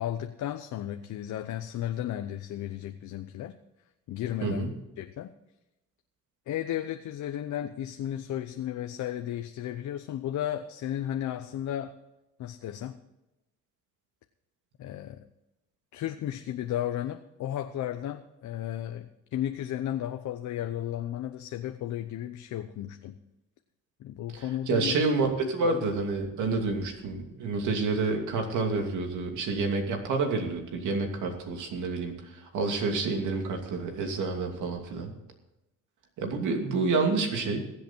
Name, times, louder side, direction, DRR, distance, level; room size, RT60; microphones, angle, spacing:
voice 1, 0.0-3.6 4.1-4.7 5.0-5.3 6.5-11.9 12.4-13.0 14.8-15.3 15.9-23.2 24.0-25.0 25.6-25.7, left 11 dB, 75° left, 7 dB, 0.8 m, -34 dB
voice 2, 4.4-4.7 24.3-35.1 36.2-37.6, right 3 dB, 80° right, 3 dB, 2.7 m, -29 dB
21.5 x 8.0 x 4.5 m, 0.95 s
cardioid pair, 90°, 30 cm